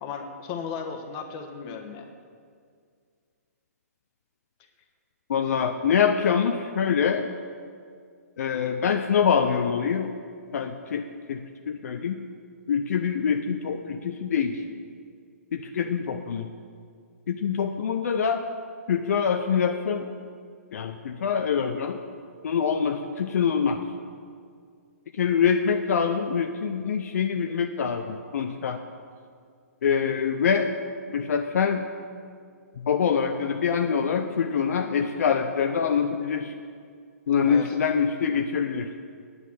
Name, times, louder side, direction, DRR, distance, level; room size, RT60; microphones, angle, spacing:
voice 1, 0.0-2.1 37.5-37.7, left 6 dB, 35° left, 5 dB, 1.2 m, -35 dB
voice 2, 5.3-7.3 8.4-10.1 10.5-11.4 11.7-12.2 12.7-14.6 15.5-16.5 17.3-18.4 18.9-20.1 20.7-22.0 22.4-23.8 25.1-28.8 29.8-30.7 31.1-31.8 32.8-36.5 37.3-38.9, left 7 dB, 70° left, 6 dB, 0.6 m, -25 dB
9.6 x 8.2 x 7.2 m, 2.2 s
hypercardioid pair, 135°, 9 cm